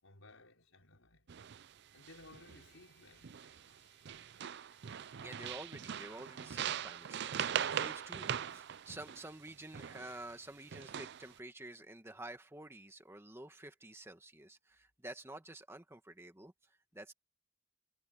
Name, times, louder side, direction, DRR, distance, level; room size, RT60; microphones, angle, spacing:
voice 1, 0.0-1.3 1.9-3.7, left 2 dB, 75° left, 5.6 m, -59 dB
sound 1, 1.3-1.7 2.0-2.7 3.2-3.8 4.0-10.2 10.7-11.3, right 9 dB, 55° right, 0.5 m, -40 dB
Bowed string instrument, 2.3-8.3, left 8 dB, 55° left, 6.2 m, -74 dB
voice 2, 5.2-17.1, right 1 dB, 10° right, 1.7 m, -50 dB
head